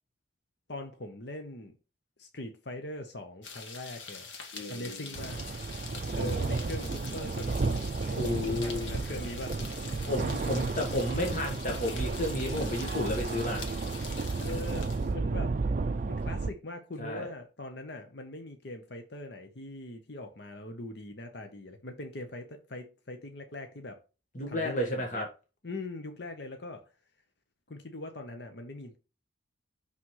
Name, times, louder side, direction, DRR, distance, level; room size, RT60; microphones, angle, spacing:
voice 1, 0.7-1.8 2.2-4.3 4.7-5.4 6.1-9.6 14.3-15.5 16.1-24.0 24.5-25.3 25.6-26.8 27.7-29.0, left 2 dB, 60° left, 1.0 m, -41 dB
sound 1, 3.4-15.1, left 5 dB, 85° left, 1.6 m, -45 dB
voice 2, 4.5-5.2 8.1-8.9 10.1-13.6 17.0-17.3 24.3-25.3, left 1 dB, 40° left, 1.5 m, -32 dB
sound 2, 5.1-16.5, right 3 dB, 45° right, 0.4 m, -32 dB
6.1 x 6.1 x 3.2 m
head